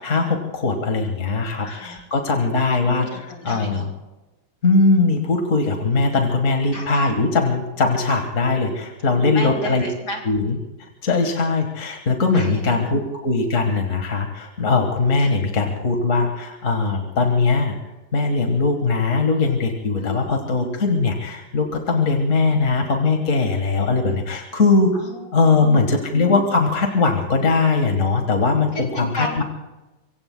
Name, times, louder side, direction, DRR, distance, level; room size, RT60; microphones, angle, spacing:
voice 1, 0.0-3.9 4.6-9.8 10.3-17.8 18.1-24.9 25.3-29.4, left 3 dB, 40° left, 3 dB, 1.8 m, -20 dB
voice 2, 1.6-2.0 2.8-3.9 6.7-7.1 9.1-10.2 12.3-12.9 15.2-15.3 20.0-20.4 24.9-25.9 28.7-29.4, left 1 dB, 55° left, -1 dB, 4.1 m, -32 dB
25.5 x 24.0 x 2.2 m, 1.1 s
omnidirectional pair, 2.2 m